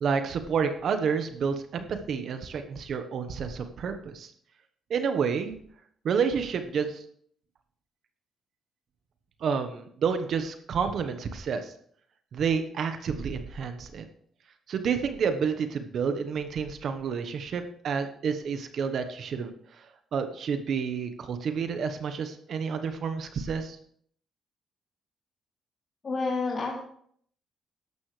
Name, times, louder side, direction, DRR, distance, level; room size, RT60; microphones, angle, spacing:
voice 1, 0.0-4.3 4.9-5.6 6.0-7.0 9.4-11.7 12.3-14.1 14.7-19.5 20.1-23.8, right 6 dB, 60° right, 8 dB, 1.2 m, -29 dB
voice 2, 26.0-26.8, left 3 dB, 40° left, -3 dB, 2.7 m, -29 dB
12.5 x 11.5 x 3.3 m, 0.62 s
cardioid pair, 90°, 0 cm